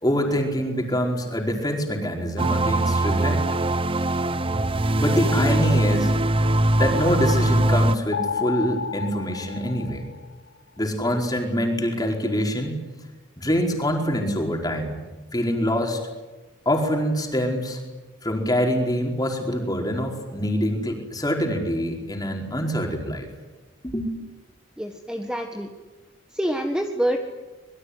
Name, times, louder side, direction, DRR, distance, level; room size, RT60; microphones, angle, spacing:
voice 1, 0.0-3.4 5.0-6.1 6.8-10.1 10.8-12.9 13.4-15.0 15.3-16.0 16.6-17.8 18.2-23.3 23.8-24.1, equal, 20° left, 2 dB, 4.7 m, -25 dB
sound 1, 2.4-8.0, right 1 dB, 25° right, 0.8 m, -21 dB
sound 2, 8.1-10.6, left 6 dB, 85° left, 2.3 m, -31 dB
voice 2, 24.8-25.7 26.3-27.2, equal, 5° right, 3 dB, 1.6 m, -26 dB
26.0 x 22.5 x 9.8 m, 1.2 s
head